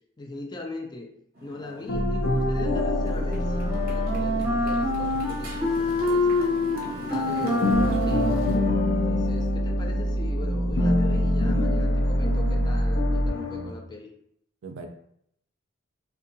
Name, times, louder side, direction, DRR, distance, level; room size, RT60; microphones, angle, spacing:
voice 1, 0.2-1.1 1.4-6.4 7.0-8.3 8.9-14.1, left 2 dB, 20° left, 1 dB, 0.3 m, -40 dB
Motorcycle, 1.4-8.6, equal, 45° right, 0.6 m, -41 dB
sound 1, 1.9-7.1 7.4-13.7, left 1 dB, 70° left, 0.5 m, -25 dB
Wind instrument woodwind instrument, 3.2-9.3, left 2 dB, 15° right, 0.9 m, -27 dB
voice 2, 7.3-7.9 14.6-14.9, right 2 dB, 85° right, 5 dB, 0.4 m, -37 dB
2.7 x 2.2 x 2.6 m, 0.72 s
head